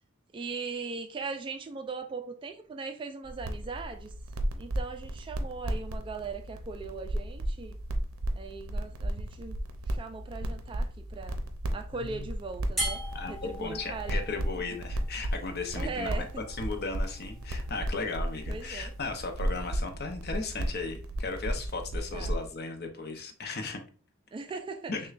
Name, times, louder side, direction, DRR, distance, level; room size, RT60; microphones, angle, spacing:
voice 1, 0.3-4.1 4.5-7.8 8.4-9.6 9.9-11.4 11.7-13.0 13.3-14.3 15.7-16.4 18.5-18.9 22.1-22.3 24.3-24.9, right 4 dB, 25° right, 0.3 m, -39 dB
sound 1, 3.2-22.5, right 1 dB, 85° right, 0.5 m, -34 dB
voice 2, 11.9-12.3 13.1-23.8 24.9-25.0, left 3 dB, 50° left, 0.6 m, -36 dB
sound 2, 12.8-19.8, equal, ahead, 1.2 m, -42 dB
6.2 x 2.2 x 2.4 m
head